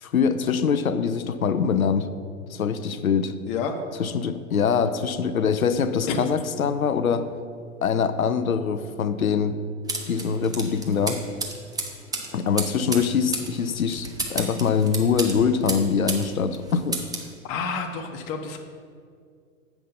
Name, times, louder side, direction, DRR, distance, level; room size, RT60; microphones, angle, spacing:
voice 1, 0.0-2.1 2.5-3.4 4.0-7.3 7.8-9.6 10.1-11.2 12.3-17.0, left 6 dB, 85° left, 12 dB, 0.6 m, -23 dB
sound 1, 9.9-16.3 16.5-17.3, right 2 dB, 10° right, 0.8 m, -32 dB
voice 2, 17.4-18.6, left 6 dB, 40° left, 3 dB, 0.8 m, -29 dB
8.2 x 5.9 x 5.4 m, 2.2 s
figure-of-eight pair, 95°, 41 cm